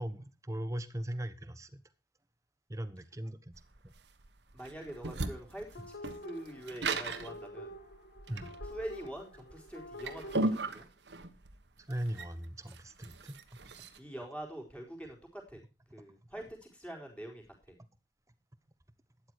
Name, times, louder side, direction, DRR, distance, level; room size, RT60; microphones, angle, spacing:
voice 1, 0.0-1.8 2.7-3.5 8.3-8.5 11.9-13.4, right 1 dB, 15° right, 1.1 m, -39 dB
sound 1, 3.5-14.0, right 2 dB, 75° right, 1.3 m, -37 dB
voice 2, 4.5-5.8 6.2-7.7 8.6-10.8 14.0-15.6 15.9-17.7, right 1 dB, 5° left, 4.3 m, -44 dB
sound 2, 5.7-10.6, equal, 65° left, 2.4 m, -48 dB
12.5 x 10.0 x 4.7 m
head